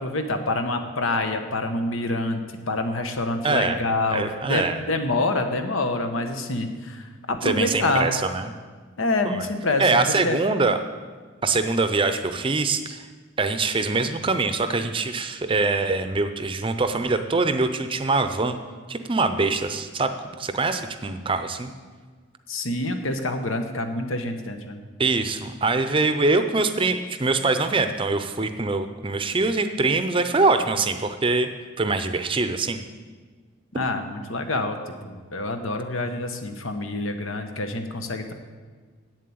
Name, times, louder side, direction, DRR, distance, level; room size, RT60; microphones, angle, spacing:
voice 1, 0.0-8.1 9.0-9.9 10.2-10.4 22.5-24.8 33.7-38.3, left 2 dB, 85° left, 6 dB, 1.1 m, -27 dB
voice 2, 3.4-3.8 4.1-4.8 7.4-8.5 9.2-9.5 9.8-10.8 11.4-13.1 13.4-18.6 18.9-20.1 20.4-21.7 25.0-31.5 31.8-32.8, right 3 dB, 25° right, 9 dB, 0.5 m, -23 dB
8.3 x 7.5 x 8.6 m, 1.5 s
head